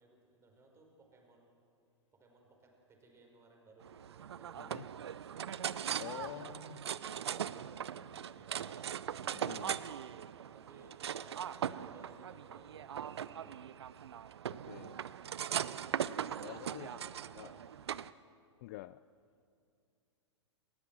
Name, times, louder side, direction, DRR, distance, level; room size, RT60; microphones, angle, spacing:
voice 1, 0.0-1.6 2.1-4.9 6.1-8.9 10.5-13.6 14.9-15.0 15.4-15.5 16.8-17.7, right 3 dB, 15° right, 1 dB, 5.1 m, -61 dB
sound 1, 3.8-18.1, right 9 dB, 60° right, 0.6 m, -40 dB
voice 2, 6.0-6.8 9.3-9.8 14.5-15.0 16.4-17.0 17.4-17.5 18.6-19.0, left 17 dB, 40° left, 16 dB, 0.4 m, -47 dB
29.5 x 14.0 x 7.5 m, 2.4 s
figure-of-eight pair, 105°, 15 cm